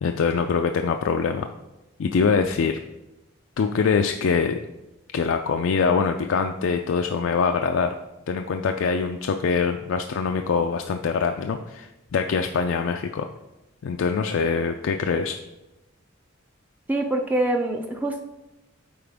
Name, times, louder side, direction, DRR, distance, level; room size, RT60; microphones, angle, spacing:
voice 1, 0.0-1.5 2.0-2.8 3.6-4.6 5.1-7.9 8.3-13.3 13.8-15.4, left 5 dB, 65° left, 5 dB, 0.4 m, -24 dB
voice 2, 16.9-18.2, right 1 dB, 10° right, 3 dB, 0.4 m, -24 dB
8.7 x 4.3 x 3.5 m, 0.98 s
head